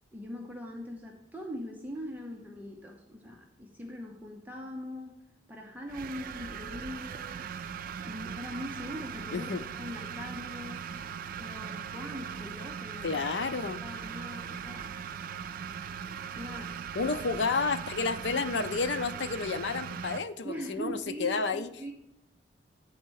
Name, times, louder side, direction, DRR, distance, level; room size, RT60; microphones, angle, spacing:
voice 1, 0.1-5.1 5.5-7.4 8.1-9.5 9.8-10.9 11.4-13.3 13.8-15.0 16.3-16.8 18.3-18.4 20.4-21.9, equal, 10° right, 0 dB, 0.8 m, -41 dB
sound 1, 5.9-20.2, right 7 dB, 55° right, 0.4 m, -39 dB
voice 2, 9.3-9.6 13.0-13.8 16.9-21.7, left 4 dB, 90° left, 11 dB, 0.5 m, -31 dB
9.2 x 4.2 x 6.3 m, 0.83 s
head